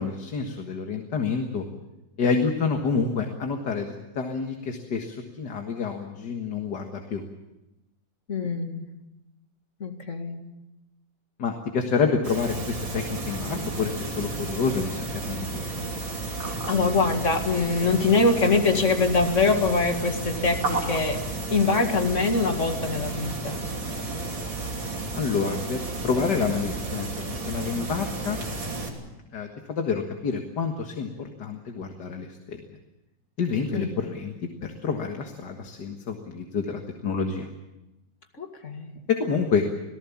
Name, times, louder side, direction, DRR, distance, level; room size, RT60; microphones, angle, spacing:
voice 1, 0.0-1.6 2.2-7.2 11.4-15.6 25.1-28.4 29.3-32.6 33.4-37.5 39.1-39.7, left 5 dB, 65° left, 3 dB, 2.2 m, -28 dB
voice 2, 8.3-8.8 9.8-10.5 16.5-23.7 33.7-34.0 38.4-39.0, left 3 dB, 40° left, 5 dB, 2.3 m, -24 dB
sound 1, 12.2-28.9, right 2 dB, 90° right, 3.8 m, -32 dB
27.0 x 18.0 x 7.2 m, 0.98 s
omnidirectional pair, 2.0 m